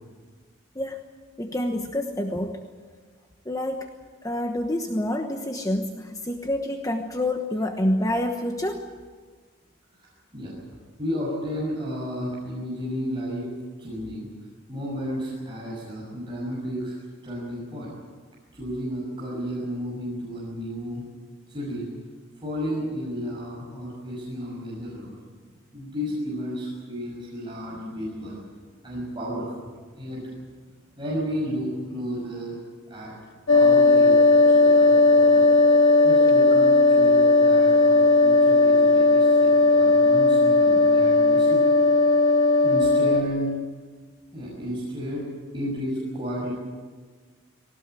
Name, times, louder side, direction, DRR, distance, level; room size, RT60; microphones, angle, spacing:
voice 1, 1.4-2.6 3.5-3.9 4.2-8.8, left 1 dB, 15° left, 4 dB, 1.1 m, -27 dB
voice 2, 11.0-13.5 13.8-14.3 14.7-17.0 17.2-17.9 18.5-21.0 21.5-21.8 22.4-25.1 25.7-28.4 28.8-29.7 29.9-30.2 31.0-32.6 32.9-33.1 33.5-35.4 36.0-41.7 42.6-43.5 44.3-45.3 45.5-46.5, equal, 25° right, -6 dB, 6.2 m, -32 dB
sound 1, 33.5-43.2, left 3 dB, 85° left, 2.0 m, -17 dB
20.0 x 18.5 x 9.1 m, 1.5 s
head